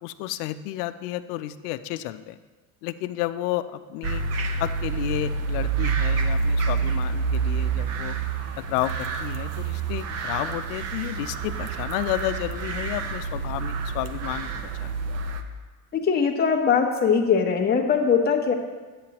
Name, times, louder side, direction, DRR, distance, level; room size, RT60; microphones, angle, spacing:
voice 1, 0.0-2.4 2.8-4.2 4.6-8.2 8.7-14.9, left 15 dB, 80° left, 12 dB, 0.6 m, -31 dB
sound 1, 4.0-15.4, right 5 dB, 35° right, 0.6 m, -28 dB
voice 2, 15.9-18.5, left 6 dB, 20° left, 1 dB, 0.9 m, -21 dB
11.0 x 8.5 x 2.9 m, 1.3 s
cardioid pair, 135°, 46 cm